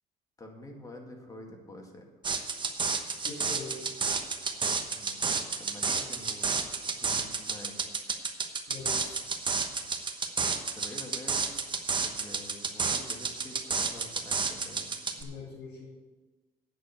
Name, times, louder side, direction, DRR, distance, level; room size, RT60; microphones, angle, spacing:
voice 1, 0.4-2.0 4.9-5.3 5.6-6.6 7.0-7.8 10.7-11.7 12.0-14.9, left 1 dB, 20° left, 1 dB, 2.0 m, -47 dB
sound 1, 2.2-15.2, right 5 dB, 30° right, 1.1 m, -31 dB
voice 2, 3.2-3.9 8.7-9.2 15.2-15.9, left 3 dB, 75° left, -6 dB, 3.8 m, -42 dB
8.9 x 6.3 x 8.5 m, 1.2 s
cardioid pair, 110°, 17 cm